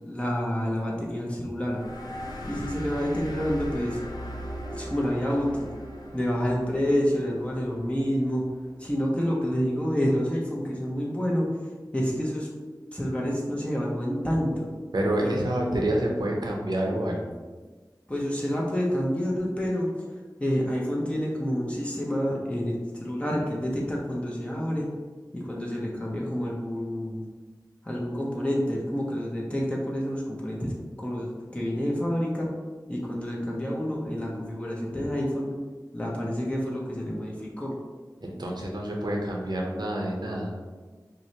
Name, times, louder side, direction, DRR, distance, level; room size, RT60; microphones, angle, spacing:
voice 1, 0.1-1.8 2.4-4.0 4.7-5.7 6.1-8.4 8.8-11.5 11.9-12.5 12.9-14.7 15.2-15.3 18.1-19.9 20.4-24.9 25.3-27.2 27.8-32.5 32.9-35.5 35.9-37.7, equal, 15° left, -4 dB, 0.6 m, -28 dB
sound 1, 1.7-8.8, equal, 60° left, 0.6 m, -39 dB
voice 2, 14.9-17.4 38.2-40.6, right 1 dB, 70° right, -1 dB, 0.7 m, -28 dB
4.6 x 2.1 x 2.7 m, 1.4 s
wide cardioid pair, 45°, 7 cm